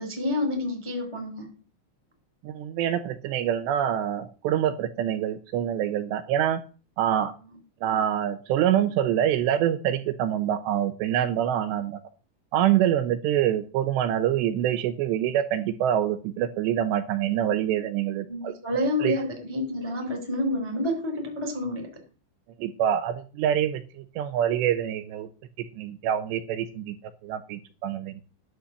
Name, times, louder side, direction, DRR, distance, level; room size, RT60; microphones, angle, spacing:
voice 1, 0.0-1.5 7.5-7.6 18.3-22.0, left 1 dB, 10° left, 3 dB, 1.6 m, -29 dB
voice 2, 2.4-6.6 7.0-7.3 7.8-12.0 12.5-18.5 19.0-19.1 22.6-25.3 25.8-27.0 27.2-28.2, right 10 dB, 80° right, 9 dB, 2.7 m, -25 dB
11.0 x 6.2 x 7.1 m, 0.35 s
omnidirectional pair, 5.5 m